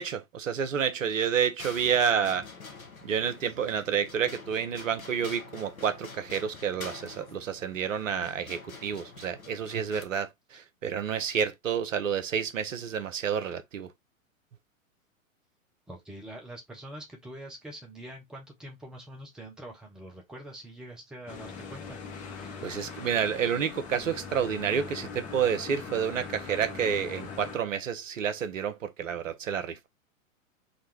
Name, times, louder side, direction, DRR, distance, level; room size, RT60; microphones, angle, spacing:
voice 1, 0.0-2.5 3.0-13.9 22.6-29.9, right 7 dB, 70° right, 0.9 m, -29 dB
sound 1, 1.6-10.1, left 4 dB, 90° left, 1.0 m, -46 dB
voice 2, 15.9-22.0 22.3-22.9 25.5-25.6, right 1 dB, ahead, 0.3 m, -45 dB
sound 2, 21.3-27.6, left 5 dB, 20° left, 0.8 m, -41 dB
3.8 x 2.2 x 4.5 m
figure-of-eight pair, 110°, 41 cm